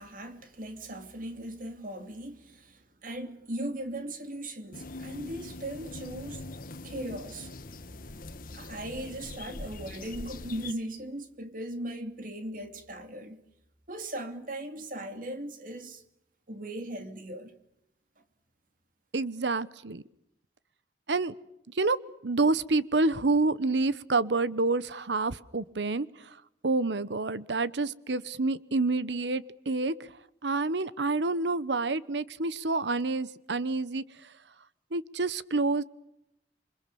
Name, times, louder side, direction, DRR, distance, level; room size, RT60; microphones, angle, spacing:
voice 1, 0.0-6.5 6.8-7.5 8.5-13.4 13.9-16.0 16.5-17.6, right 1 dB, 50° right, 2.9 m, -38 dB
sound 1, 4.7-10.7, left 2 dB, 50° left, 1.4 m, -42 dB
voice 2, 19.1-20.0 21.1-21.3 21.7-22.0 22.2-26.4 26.6-30.1 30.4-34.3 34.9-35.8, right 3 dB, 80° right, 1.0 m, -28 dB
27.5 x 25.0 x 7.0 m
head